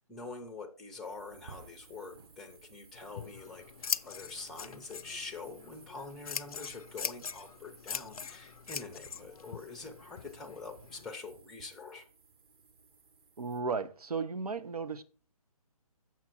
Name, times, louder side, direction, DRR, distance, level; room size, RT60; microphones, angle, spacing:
voice 1, 0.0-12.1, left 3 dB, ahead, 0.6 m, -45 dB
sound 1, 1.0-13.6, right 5 dB, 40° right, 1.3 m, -59 dB
Scissors, 2.9-11.1, left 7 dB, 70° left, 0.4 m, -42 dB
voice 2, 13.4-15.0, right 4 dB, 80° right, 0.8 m, -35 dB
7.3 x 6.0 x 4.2 m
figure-of-eight pair, 145°, 19 cm